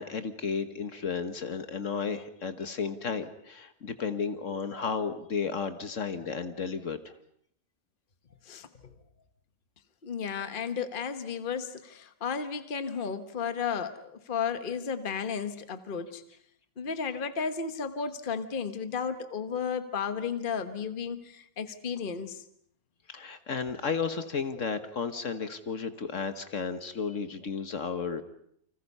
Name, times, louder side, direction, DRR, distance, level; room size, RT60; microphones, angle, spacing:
voice 1, 0.0-7.1 23.1-28.2, left 5 dB, 60° left, 9 dB, 1.6 m, -33 dB
voice 2, 8.4-8.9 10.0-16.2 16.8-22.4, left 6 dB, 40° left, 9 dB, 1.4 m, -33 dB
30.0 x 25.0 x 5.5 m, 0.70 s
omnidirectional pair, 1.5 m